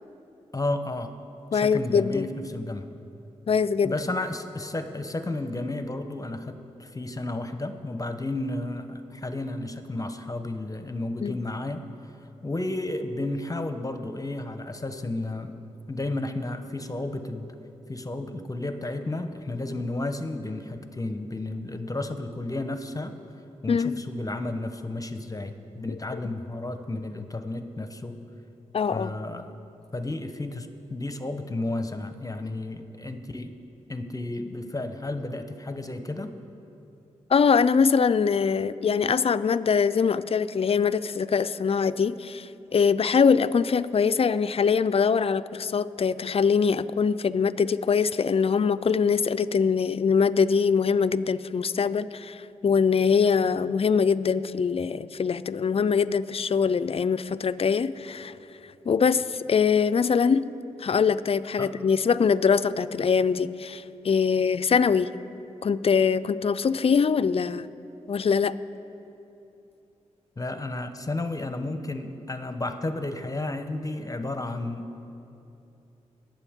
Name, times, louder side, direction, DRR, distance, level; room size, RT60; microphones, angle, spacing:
voice 1, 0.5-1.1 1.5-2.9 3.8-11.9 12.4-15.5 15.9-17.6 17.9-23.1 23.6-28.2 28.9-29.5 29.9-33.5 33.9-36.3 61.6-61.7 70.4-74.9, left 2 dB, 25° left, 8 dB, 0.9 m, -32 dB
voice 2, 1.5-2.3 3.5-4.0 11.2-11.4 23.7-24.0 28.7-29.1 37.3-58.3 58.8-60.5 60.8-65.1 65.6-67.7 68.1-68.6, left 6 dB, 45° left, 14 dB, 0.5 m, -23 dB
22.5 x 7.6 x 3.7 m, 2.8 s
supercardioid pair, 40°, 13 cm